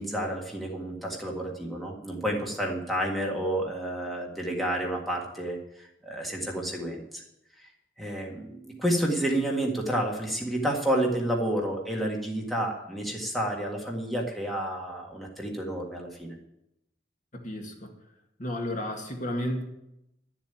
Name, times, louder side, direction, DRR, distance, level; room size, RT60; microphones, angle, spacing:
voice 1, 0.0-7.2 7.6-7.7 8.0-16.3, right 1 dB, ahead, -1 dB, 1.8 m, -30 dB
voice 2, 17.3-17.9 18.4-19.6, left 1 dB, 45° left, 2 dB, 1.9 m, -32 dB
12.0 x 7.3 x 9.1 m, 0.84 s
head